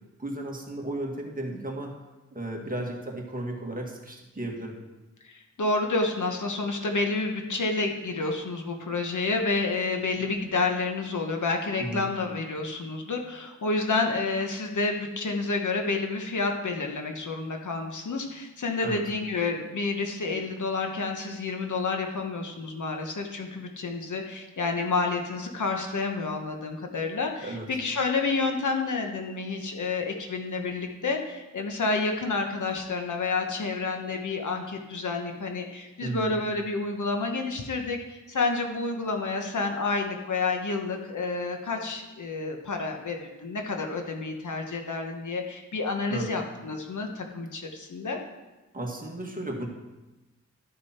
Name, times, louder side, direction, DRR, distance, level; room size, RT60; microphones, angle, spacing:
voice 1, 0.2-1.9 2.3-4.8 11.8-12.1 18.8-19.0 27.4-27.7 36.0-36.4 46.1-46.3 48.7-49.7, right 1 dB, 30° right, -1 dB, 1.8 m, -34 dB
voice 2, 5.2-48.2, left 3 dB, 75° left, 3 dB, 1.2 m, -29 dB
12.0 x 6.6 x 4.4 m, 1.1 s
wide cardioid pair, 95°, 30 cm